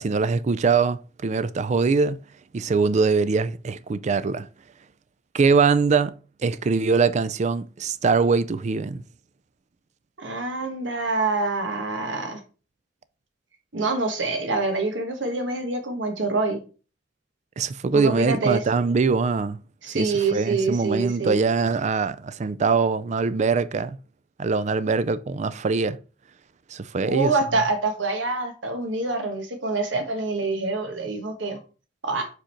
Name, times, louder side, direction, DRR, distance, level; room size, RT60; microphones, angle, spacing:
voice 1, 0.0-2.2 2.5-4.5 5.3-9.0 17.6-19.6 19.9-24.0 24.4-26.0 26.7-27.3, right 4 dB, 40° right, 0.4 m, -23 dB
voice 2, 10.2-12.4 13.7-16.6 17.9-18.6 19.8-21.4 27.0-31.6 32.0-32.3, right 3 dB, 85° right, 1.4 m, -26 dB
5.1 x 4.9 x 4.4 m
head